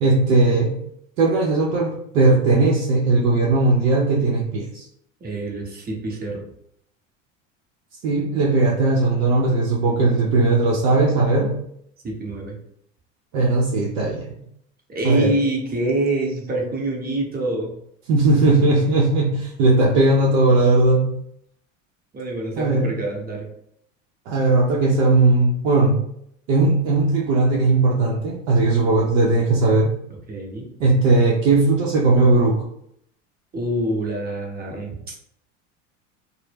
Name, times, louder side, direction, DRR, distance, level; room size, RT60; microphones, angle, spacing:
voice 1, 0.0-0.8 1.2-4.8 8.0-11.5 13.3-14.3 15.0-15.3 18.1-21.1 22.6-22.9 24.3-26.0 26.5-30.0 30.8-32.6, right 2 dB, 75° right, -4 dB, 0.6 m, -18 dB
voice 2, 5.2-6.4 12.0-12.6 14.9-17.7 22.1-23.5 30.3-30.7 33.5-35.2, right 1 dB, 25° right, -1 dB, 0.7 m, -26 dB
2.0 x 2.0 x 3.2 m, 0.73 s
hypercardioid pair, 85°, 39 cm